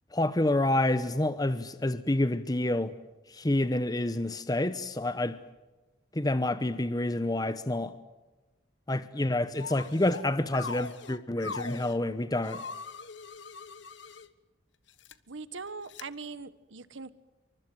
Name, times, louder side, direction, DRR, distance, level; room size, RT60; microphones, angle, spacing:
voice 1, 0.1-2.9 3.3-5.4 6.1-7.9 8.9-12.6, left 1 dB, 20° left, 0.9 m, -28 dB
sound 1, 9.6-10.2 10.5-12.0 12.4-14.3 14.9-15.1 15.9-16.0, left 4 dB, 70° left, 1.3 m, -41 dB
voice 2, 15.3-17.1, right 4 dB, 80° right, 1.4 m, -41 dB
28.0 x 24.5 x 7.8 m
head